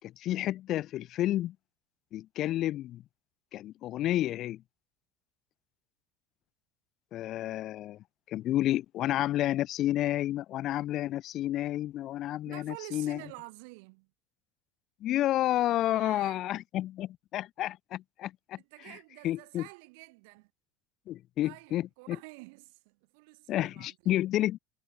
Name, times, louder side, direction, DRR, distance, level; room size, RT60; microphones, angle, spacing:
voice 1, 0.0-1.6 2.1-3.0 3.5-4.6 7.1-8.0 8.3-13.2 15.0-18.6 19.2-19.7 21.1-22.2 23.5-24.6, left 14 dB, 45° left, 0.5 m, -30 dB
voice 2, 12.5-14.1 15.9-16.4 18.6-20.5 21.4-24.2, right 30 dB, 75° right, 3.4 m, -49 dB
supercardioid pair, 135°, 0 cm